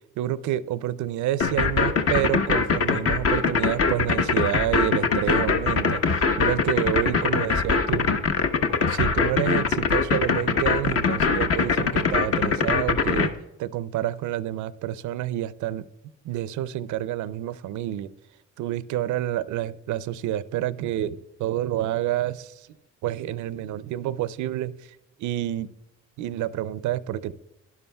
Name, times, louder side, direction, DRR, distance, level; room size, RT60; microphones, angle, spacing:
voice 1, 0.2-8.2 8.9-13.3 13.6-15.8 16.2-18.1 18.6-22.7 23.0-24.8 25.2-25.7 26.2-27.3, right 12 dB, 75° right, 17 dB, 0.5 m, -28 dB
sound 1, 1.4-13.3, left 5 dB, 50° left, 0.9 m, -22 dB
12.5 x 11.0 x 2.3 m, 0.94 s
cardioid pair, 90°, 30 cm